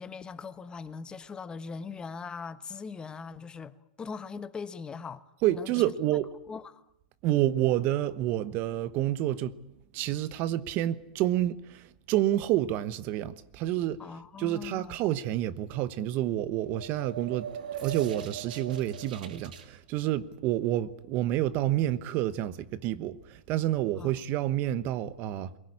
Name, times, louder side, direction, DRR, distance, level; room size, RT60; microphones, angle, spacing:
voice 1, 0.0-5.2 5.5-5.9 6.5-6.8 14.0-15.0 24.0-24.1, left 5 dB, 20° left, 1.1 m, -40 dB
voice 2, 5.4-6.3 7.2-9.5 9.9-14.0 14.4-17.5 17.8-25.5, right 13 dB, 45° right, 1.1 m, -29 dB
sound 1, 16.4-19.7, right 8 dB, 75° right, 2.5 m, -40 dB
23.0 x 17.5 x 9.9 m
hypercardioid pair, 115°, 5 cm